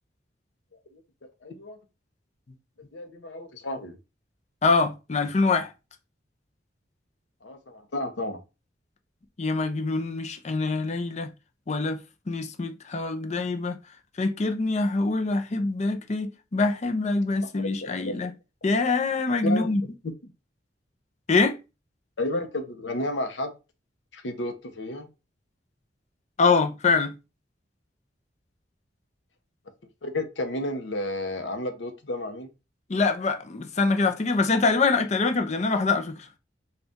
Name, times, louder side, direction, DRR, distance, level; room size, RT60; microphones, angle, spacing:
voice 1, 1.4-1.8 2.9-4.0 7.4-8.4 17.6-18.2 19.4-19.7 20.0-20.3 22.2-23.5 24.1-25.1 30.0-32.5, left 1 dB, 75° left, 0.8 m, -32 dB
voice 2, 4.6-5.7 9.4-11.3 11.7-12.0 12.3-13.8 14.2-18.3 18.6-19.8 21.3-21.6 26.4-27.1 32.9-36.3, left 3 dB, 40° left, 0.5 m, -24 dB
4.0 x 2.4 x 3.5 m
head